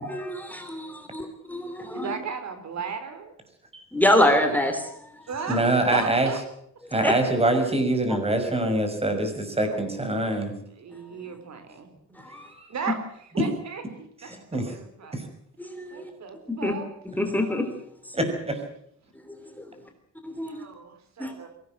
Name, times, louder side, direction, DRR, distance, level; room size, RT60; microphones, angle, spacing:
voice 1, 0.0-2.1 3.9-5.0 7.0-7.1 12.2-12.5 15.6-16.1 16.5-16.7 17.2-17.8 18.1-18.2 19.2-19.7 20.2-20.6 21.2-21.3, left 1 dB, 5° left, 5 dB, 3.2 m, -26 dB
voice 2, 1.9-3.3 5.3-5.6 5.9-6.4 9.7-9.8 10.8-11.9 12.7-14.3 14.7-15.2 15.9-16.9 20.4-21.5, right 6 dB, 60° right, 8 dB, 4.1 m, -35 dB
voice 3, 5.5-6.3 6.9-10.5 12.3-12.7 13.4-13.5 14.3-14.7 15.1-15.2 18.1-18.6, right 1 dB, 20° right, 7 dB, 6.0 m, -24 dB
23.5 x 18.0 x 7.7 m, 0.70 s
cardioid pair, 135°, 31 cm